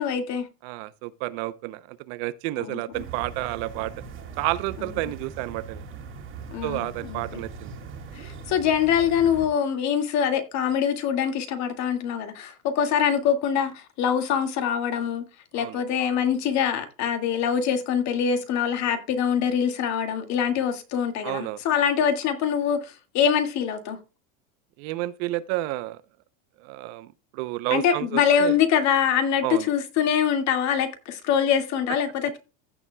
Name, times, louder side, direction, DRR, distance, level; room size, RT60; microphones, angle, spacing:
voice 1, 0.0-0.5 2.6-2.8 6.5-7.4 8.2-15.2 15.5-24.0 27.7-32.4, left 8 dB, 40° left, 2.0 m, -24 dB
voice 2, 0.6-3.9 4.4-5.8 6.6-7.7 15.5-15.8 21.2-21.6 24.8-26.0 26.6-28.6 29.4-29.7, right 17 dB, 55° right, 0.7 m, -30 dB
sound 1, 2.9-9.5, right 5 dB, 30° right, 2.4 m, -40 dB
15.5 x 7.1 x 2.2 m
supercardioid pair, 145°, 41 cm